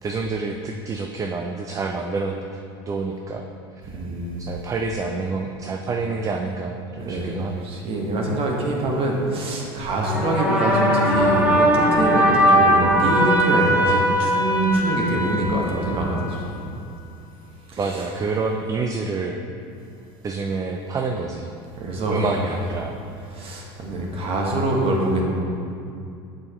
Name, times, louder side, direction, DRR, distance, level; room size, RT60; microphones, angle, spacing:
voice 1, 0.0-2.6 2.9-3.5 3.8-3.9 4.5-7.7 17.8-19.4 20.2-21.5 22.1-23.0, right 4 dB, 25° right, 3 dB, 0.5 m, -27 dB
voice 2, 3.9-4.4 7.0-7.4 7.6-16.6 17.7-17.8 21.8-22.5 23.3-25.2, right 1 dB, 45° right, -1 dB, 1.4 m, -24 dB
sound 1, 10.0-16.4, equal, 5° right, 1.3 m, -20 dB
7.4 x 6.2 x 3.1 m, 2.6 s
hypercardioid pair, 95°, 13 cm